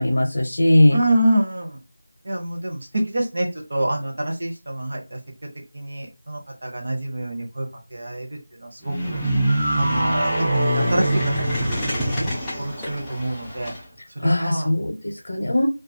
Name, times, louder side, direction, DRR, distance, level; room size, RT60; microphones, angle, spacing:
voice 1, 0.0-1.0 14.2-15.7, left 1 dB, 50° left, 1 dB, 0.6 m, -19 dB
voice 2, 0.9-1.8 2.2-5.2 5.7-7.7 7.9-8.3 8.6-9.2 9.7-10.4 10.7-11.1 11.4-12.3 12.6-13.7 14.2-14.7, right 1 dB, 40° right, 2 dB, 0.7 m, -26 dB
sound 1, 8.8-13.8, right 1 dB, ahead, 0.3 m, -25 dB
sound 2, 9.1-12.6, right 1 dB, 80° right, 0.6 m, -27 dB
2.3 x 2.3 x 2.6 m, 0.31 s
figure-of-eight pair, 180°, 0 cm